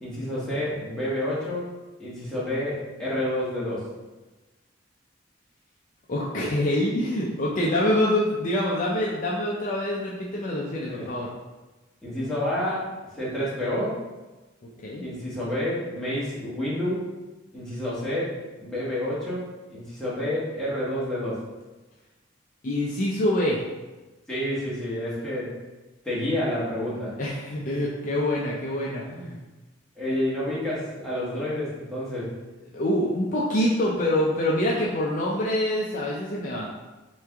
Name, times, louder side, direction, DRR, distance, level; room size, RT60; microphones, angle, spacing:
voice 1, 0.0-1.7 2.0-3.9 10.9-11.1 12.0-12.9 13.1-14.0 15.0-17.1 17.5-18.3 18.6-21.4 24.3-25.6 26.0-27.1 30.0-32.3, left 1 dB, 5° left, -10 dB, 1.2 m, -29 dB
voice 2, 6.1-11.3 14.8-15.0 22.6-23.6 27.2-29.4 30.1-30.2 32.7-36.7, left 1 dB, 40° left, -4 dB, 0.4 m, -25 dB
3.3 x 3.1 x 3.5 m, 1.1 s
head